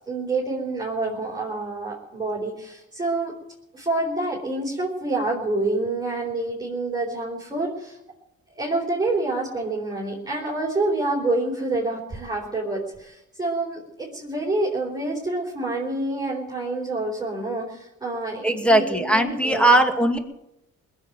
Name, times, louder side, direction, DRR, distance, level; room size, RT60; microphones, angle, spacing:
voice 1, 0.1-3.3 3.7-8.0 8.5-19.7, right 2 dB, 15° right, -4 dB, 4.3 m, -27 dB
voice 2, 18.4-20.2, right 1 dB, 5° left, 5 dB, 2.3 m, -19 dB
20.0 x 7.8 x 9.1 m, 0.87 s
cardioid pair, 90°, 30 cm